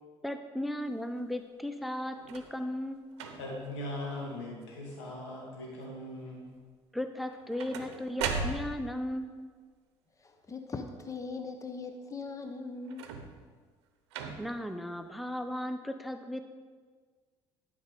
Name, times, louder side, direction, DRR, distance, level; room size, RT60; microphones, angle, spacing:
voice 1, 0.2-3.1 6.9-9.5 14.4-16.4, left 1 dB, ahead, 8 dB, 0.6 m, -36 dB
sound 1, 2.2-2.6 3.1-3.7 4.3-4.6 4.9-5.5 7.2-9.0 12.9-13.5 14.1-14.7 15.5-15.6, right 5 dB, 75° right, 0.8 m, -38 dB
voice 2, 3.4-6.5, left 1 dB, 80° left, -3 dB, 2.3 m, -40 dB
voice 3, 10.2-13.1, left 4 dB, 20° left, 6 dB, 0.9 m, -40 dB
11.5 x 5.2 x 4.8 m, 1.5 s
hypercardioid pair, 60°, 14 cm